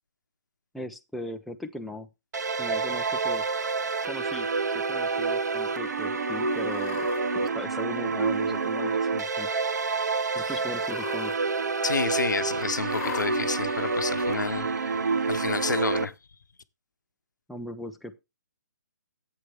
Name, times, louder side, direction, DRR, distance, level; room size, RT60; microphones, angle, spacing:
voice 1, 0.7-2.1 2.6-3.5 4.1-4.5 4.7-7.1 7.3-9.5 10.3-11.3 17.5-18.2, left 1 dB, ahead, 0.5 m, -38 dB
sound 1, 2.3-16.1, right 4 dB, 70° right, 0.9 m, -28 dB
Cat, 3.1-3.7 4.4-4.9 5.3-5.4 6.4-7.2 8.2-8.8 9.1-9.7 10.7-11.4 11.7-11.8 12.9-13.3 14.2-14.3 15.4-16.0, left 11 dB, 30° left, 1.0 m, -42 dB
voice 2, 11.8-16.1, left 5 dB, 85° left, 0.9 m, -30 dB
11.0 x 8.2 x 3.4 m
hypercardioid pair, 145°, 10 cm